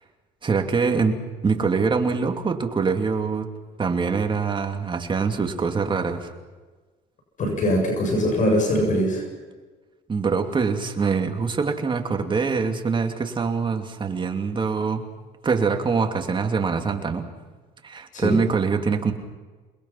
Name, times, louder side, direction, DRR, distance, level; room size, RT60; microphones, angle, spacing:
voice 1, 0.4-1.2 1.4-3.5 3.8-6.3 10.1-15.1 15.4-17.3 17.8-19.1, right 5 dB, 30° right, 5 dB, 2.9 m, -24 dB
voice 2, 7.4-9.3 18.1-18.4, equal, 50° left, 2 dB, 7.5 m, -22 dB
28.5 x 21.5 x 5.9 m, 1.3 s
cardioid pair, 110°, 17 cm